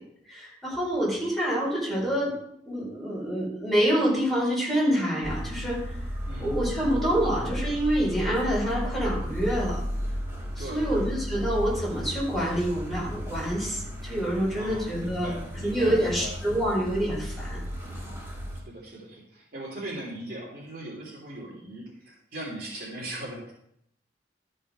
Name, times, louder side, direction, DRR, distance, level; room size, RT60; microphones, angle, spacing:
voice 1, 0.3-2.3 2.7-6.0 6.4-9.8 10.6-17.6, equal, ahead, -7 dB, 4.6 m, -27 dB
sound 1, 5.2-18.6, equal, 15° right, 2.4 m, -34 dB
voice 2, 6.3-7.3 10.6-11.4 14.6-16.7 18.6-23.5, right 1 dB, 55° right, -4 dB, 3.0 m, -40 dB
13.0 x 5.5 x 4.9 m, 0.73 s
head